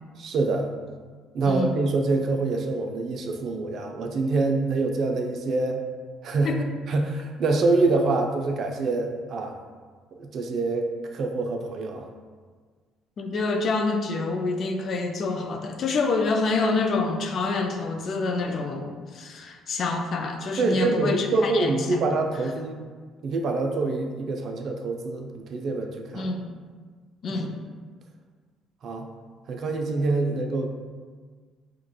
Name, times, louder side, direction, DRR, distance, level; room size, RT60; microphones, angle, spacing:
voice 1, 0.2-0.7 1.3-5.8 6.2-6.5 6.9-9.6 10.2-12.1 20.6-22.8 23.2-26.3 27.3-27.4 28.8-29.1 29.5-30.7, right 3 dB, 60° right, 3 dB, 0.4 m, -25 dB
voice 2, 13.2-22.0 26.1-26.5 27.2-27.6, left 3 dB, 55° left, 4 dB, 0.4 m, -27 dB
4.7 x 2.2 x 2.2 m, 1.5 s
supercardioid pair, 75°, 0 cm